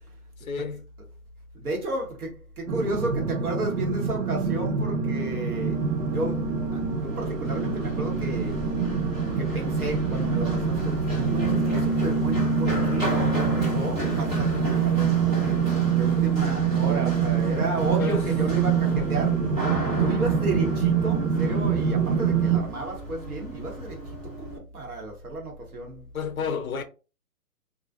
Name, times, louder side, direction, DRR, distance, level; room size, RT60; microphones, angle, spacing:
voice 1, 0.4-0.8 18.0-18.2 23.7-23.8 26.1-26.8, left 6 dB, 65° left, 0.5 m, -30 dB
voice 2, 1.5-8.6 9.4-19.5 19.8-26.1, right 2 dB, 70° right, 1.2 m, -33 dB
sound 1, 2.7-22.6, right 6 dB, 85° right, 0.7 m, -25 dB
Run, 5.5-24.6, right 1 dB, 30° right, 1.2 m, -35 dB
2.4 x 2.4 x 2.4 m
hypercardioid pair, 180°, 46 cm